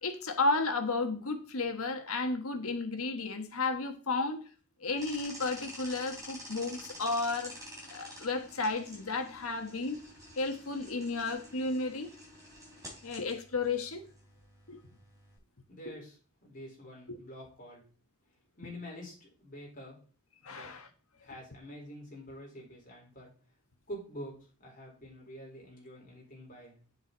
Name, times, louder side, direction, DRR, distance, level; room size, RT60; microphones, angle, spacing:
voice 1, 0.0-4.4 4.8-7.5 7.9-10.0 10.4-12.1 13.0-14.0 14.7-14.8 17.1-17.2 20.4-20.9, left 3 dB, 90° left, 1.4 m, -33 dB
sound 1, 5.0-15.4, equal, 15° right, 4.1 m, -49 dB
voice 2, 15.7-17.8 18.6-20.0 20.5-20.7 21.2-23.3 23.9-24.3 24.6-26.8, equal, 40° left, 4.4 m, -47 dB
8.5 x 7.3 x 4.1 m
head